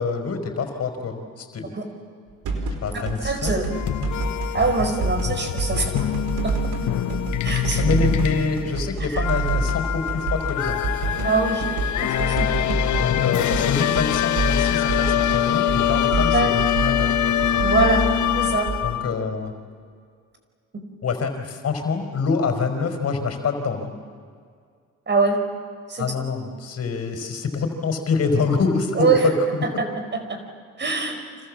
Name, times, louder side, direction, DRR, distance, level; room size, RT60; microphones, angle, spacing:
voice 1, 0.0-1.7 2.8-3.6 7.8-11.1 12.9-17.6 18.8-19.5 21.0-23.9 26.0-29.6, left 4 dB, 55° left, 6 dB, 4.6 m, -26 dB
sound 1, 2.4-5.3 5.6-13.7 13.9-18.8, right 2 dB, 85° right, 4.8 m, -27 dB
voice 2, 2.9-3.7 4.5-6.0 6.4-6.6 7.4-7.8 9.1-9.2 11.2-11.7 12.0-12.8 16.3-16.5 17.6-18.0 18.3-18.7 20.7-20.8 25.1-25.4 25.9-26.1 29.0-29.3 29.8-29.9 30.1-30.4 30.8-31.2, right 4 dB, 35° right, 6 dB, 5.3 m, -23 dB
sound 2, 3.7-19.1, left 11 dB, 70° left, 1.2 m, -24 dB
29.5 x 26.5 x 7.6 m, 2.1 s
cardioid pair, 90°, 30 cm